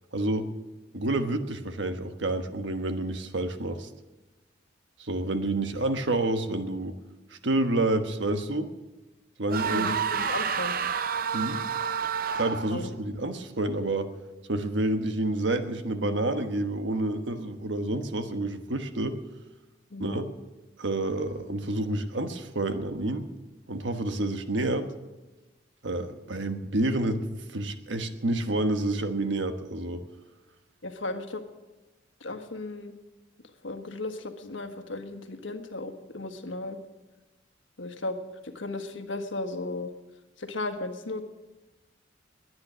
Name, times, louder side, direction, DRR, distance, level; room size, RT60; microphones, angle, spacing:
voice 1, 0.1-0.5 0.9-3.9 5.0-6.9 7.4-8.7 9.4-9.9 11.3-11.6 12.3-14.1 14.5-19.2 20.0-20.2 20.8-23.3 23.7-24.9 25.8-30.0, right 2 dB, 75° right, 7 dB, 1.3 m, -29 dB
sound 1, 9.5-12.9, right 6 dB, 50° right, 0.6 m, -29 dB
voice 2, 9.7-10.9 12.7-12.9 19.9-20.2 30.8-31.4 32.2-32.9 33.6-36.8 37.8-39.9 40.4-41.2, left 2 dB, 90° left, 7 dB, 1.5 m, -35 dB
21.0 x 9.7 x 6.2 m, 1.1 s
head